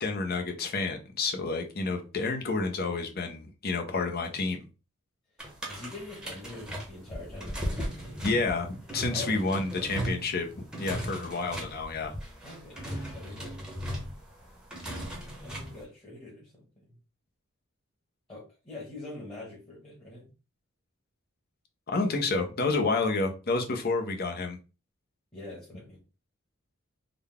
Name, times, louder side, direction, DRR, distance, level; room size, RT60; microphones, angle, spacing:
voice 1, 0.0-4.6 8.2-12.1 21.9-24.6, left 3 dB, 45° left, 0.7 m, -29 dB
sound 1, 5.4-15.8, right 1 dB, 5° right, 0.9 m, -37 dB
voice 2, 5.6-8.7 9.1-9.4 12.4-13.6 15.2-16.5 16.9-17.0 18.3-20.2 25.3-26.0, left 2 dB, 25° left, 1.4 m, -44 dB
3.8 x 2.2 x 3.5 m
head